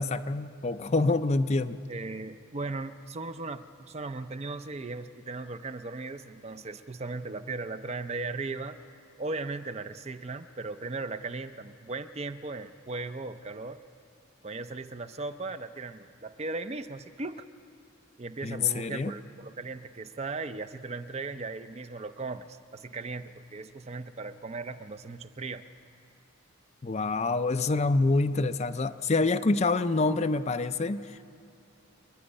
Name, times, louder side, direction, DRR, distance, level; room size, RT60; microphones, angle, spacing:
voice 1, 0.0-1.8 18.4-19.1 26.8-31.2, left 3 dB, 30° left, 10 dB, 0.5 m, -26 dB
voice 2, 1.9-8.8 9.2-13.8 14.4-17.5 18.2-25.6, right 3 dB, 30° right, 10 dB, 0.6 m, -37 dB
27.0 x 10.5 x 10.0 m, 2.8 s
head